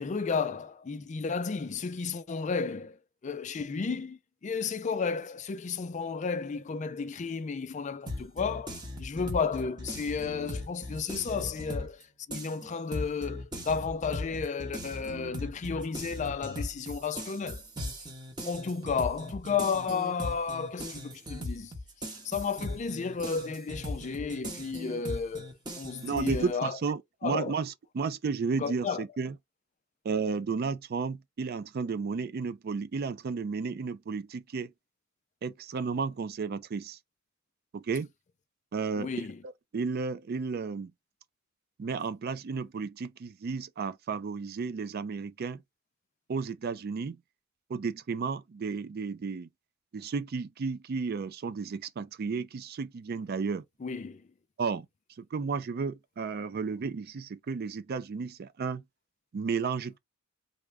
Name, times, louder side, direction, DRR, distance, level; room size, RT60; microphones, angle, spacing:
voice 1, 0.0-12.0 12.3-17.6 18.4-21.7 22.0-26.8 27.2-27.6 28.6-29.0 39.0-39.4 53.8-54.3, left 5 dB, 35° left, 0.4 m, -33 dB
sound 1, 8.1-12.0 12.3-26.5, left 1 dB, 20° right, 1.1 m, -39 dB
voice 2, 26.0-29.3 30.0-34.7 35.4-37.0 37.7-38.1 38.7-39.1 39.7-40.9 41.8-45.6 46.3-47.2 47.7-49.5 49.9-53.6 54.6-54.9 55.2-58.8 59.3-60.0, right 5 dB, 45° right, 0.4 m, -33 dB
3.5 x 2.1 x 3.3 m
head